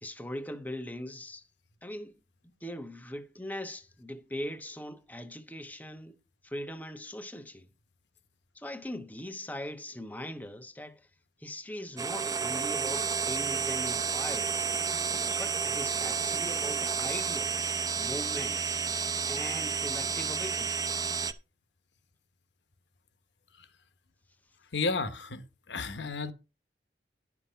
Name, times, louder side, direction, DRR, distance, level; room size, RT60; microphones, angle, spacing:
voice 1, 0.0-1.4 1.8-2.1 2.4-6.2 6.4-7.7 8.5-11.0 11.4-14.7 15.4-18.8 19.3-21.1, left 1 dB, 10° left, 0.9 m, -40 dB
sound 1, 12.0-21.3, right 6 dB, 20° right, 0.6 m, -31 dB
voice 2, 24.7-25.4 25.7-26.3, left 4 dB, 85° left, 1.1 m, -32 dB
11.0 x 6.0 x 5.6 m
head